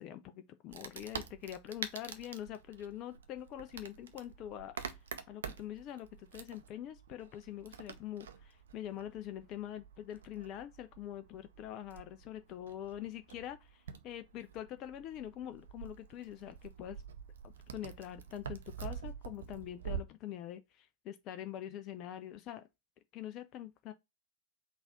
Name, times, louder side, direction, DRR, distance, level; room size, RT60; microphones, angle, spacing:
voice 1, 0.0-4.7 5.3-17.0 17.7-22.6 23.1-23.9, left 11 dB, 35° left, 0.4 m, -44 dB
Wood, 0.7-20.0, right 7 dB, 65° right, 0.5 m, -47 dB
3.9 x 2.4 x 3.9 m
figure-of-eight pair, 90°, 0 cm